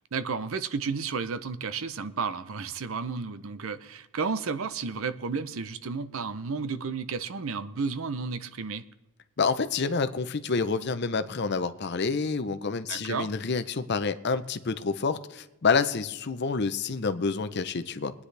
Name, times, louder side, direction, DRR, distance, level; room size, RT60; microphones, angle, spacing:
voice 1, 0.1-8.8 12.9-13.3, right 5 dB, 65° right, 0.6 m, -32 dB
voice 2, 9.4-18.1, left 4 dB, 50° left, 0.6 m, -28 dB
22.0 x 9.7 x 3.3 m
head